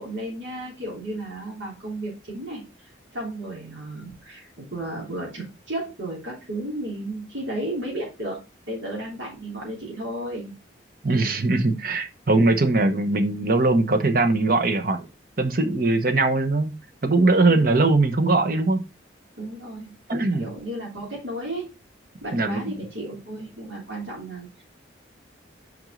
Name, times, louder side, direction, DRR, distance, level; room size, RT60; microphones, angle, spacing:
voice 1, 0.0-2.6 3.1-8.4 8.7-10.5 19.4-19.9 20.4-21.7 22.2-24.6, right 1 dB, 70° right, -3 dB, 3.3 m, -33 dB
voice 2, 11.0-15.1 15.4-16.7 17.0-18.8 20.1-20.5 22.3-22.7, right 2 dB, 45° right, 8 dB, 0.8 m, -21 dB
6.1 x 5.2 x 3.7 m, 0.26 s
head